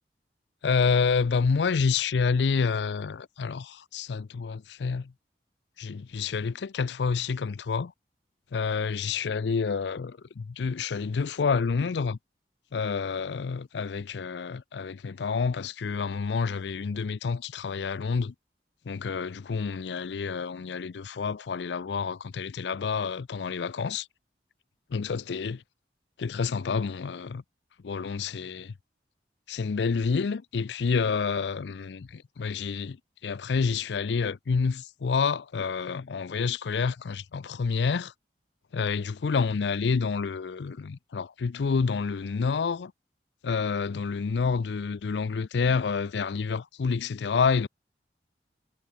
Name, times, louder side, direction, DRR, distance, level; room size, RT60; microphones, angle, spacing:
voice 1, 0.6-5.1 5.8-7.9 8.5-12.2 12.7-18.3 18.9-24.1 24.9-25.6 26.2-27.4 27.8-28.7 29.5-33.0 33.2-38.1 38.7-42.9 43.4-47.7, left 5 dB, 85° left, 0.5 m, -28 dB
head